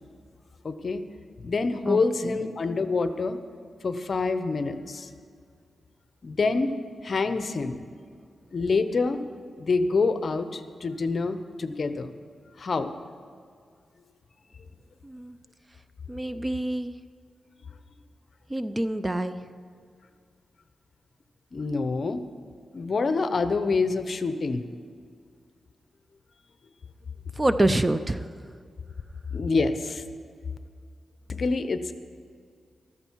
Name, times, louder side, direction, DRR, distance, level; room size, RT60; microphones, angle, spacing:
voice 1, 0.6-1.0 1.4-3.4 3.8-5.1 6.2-6.7 7.0-7.8 8.5-9.2 9.6-12.1 12.6-12.9 21.5-22.2 22.7-24.7 29.3-30.0 31.4-31.9, left 4 dB, 50° left, 10 dB, 0.8 m, -26 dB
voice 2, 1.9-2.4 15.0-15.4 16.1-16.9 18.5-19.4 27.4-28.4, right 1 dB, 20° right, 11 dB, 0.5 m, -26 dB
14.5 x 13.5 x 4.6 m, 2.2 s
wide cardioid pair, 105°, 0 cm